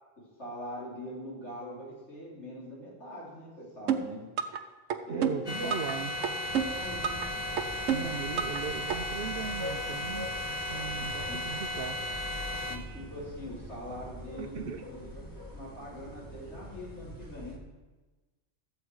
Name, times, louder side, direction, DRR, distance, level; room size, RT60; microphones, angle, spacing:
voice 1, 0.4-4.2 5.1-6.3 6.7-7.2 11.0-11.4 12.7-15.2 15.5-17.6, equal, 65° left, -7 dB, 4.1 m, -42 dB
sound 1, 3.9-4.6 4.9-5.9 6.2-7.3 7.6-8.6 8.9-9.0, right 8 dB, 85° right, 1.1 m, -29 dB
voice 2, 5.1-6.1 7.9-10.3 10.7-12.0 14.4-14.8, right 7 dB, 60° right, 9 dB, 0.7 m, -38 dB
sound 2, 5.5-12.8, left 1 dB, 30° left, 1.2 m, -35 dB
sound 3, 6.4-17.6, left 1 dB, 15° left, 1.4 m, -44 dB
13.0 x 7.8 x 4.7 m, 1.2 s
omnidirectional pair, 1.3 m